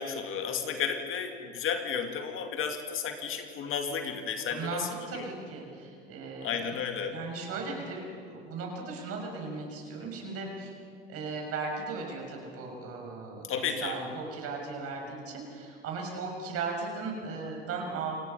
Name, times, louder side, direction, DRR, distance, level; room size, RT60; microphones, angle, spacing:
voice 1, 0.0-5.3 6.4-7.2 13.5-14.0, left 6 dB, 45° left, 5 dB, 2.3 m, -33 dB
voice 2, 4.5-6.8 7.0-10.7 11.1-18.2, right 4 dB, 50° right, 1 dB, 6.5 m, -37 dB
28.0 x 17.5 x 5.6 m, 2.4 s
hypercardioid pair, 85°, 31 cm